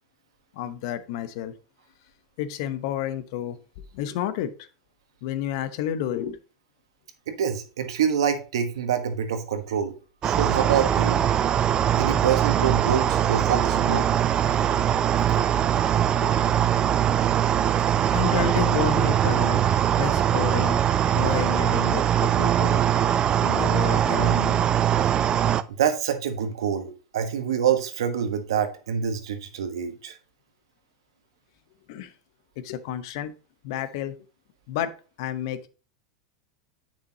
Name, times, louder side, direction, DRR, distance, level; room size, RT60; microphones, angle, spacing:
voice 1, 0.5-1.6 2.4-3.6 3.9-4.5 5.2-6.4 16.2-16.3 17.9-19.6 20.0-20.8 21.1-22.8 23.4-24.6 25.4-25.5 31.9-32.1 32.6-33.3 33.6-34.2 34.7-34.9 35.2-35.7, left 10 dB, 60° left, 11 dB, 0.9 m, -30 dB
voice 2, 7.3-9.9 10.2-11.2 11.9-14.1 25.7-30.2, right 8 dB, 75° right, 8 dB, 1.2 m, -26 dB
sound 1, 10.2-25.6, right 10 dB, 30° right, 0.4 m, -22 dB
8.5 x 6.1 x 2.8 m, 0.36 s
hypercardioid pair, 90°, 3 cm